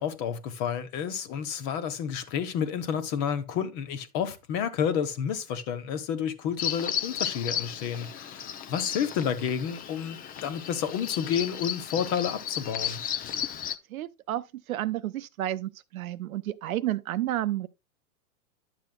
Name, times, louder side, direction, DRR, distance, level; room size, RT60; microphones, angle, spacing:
voice 1, 0.0-13.0, left 8 dB, 40° left, 1.4 m, -30 dB
Bird vocalization bird call bird song, 6.6-13.8, left 9 dB, 20° left, 0.6 m, -34 dB
voice 2, 13.9-14.4 14.7-17.7, right 14 dB, 70° right, 0.8 m, -31 dB
11.0 x 7.1 x 2.3 m
hypercardioid pair, 120°, 44 cm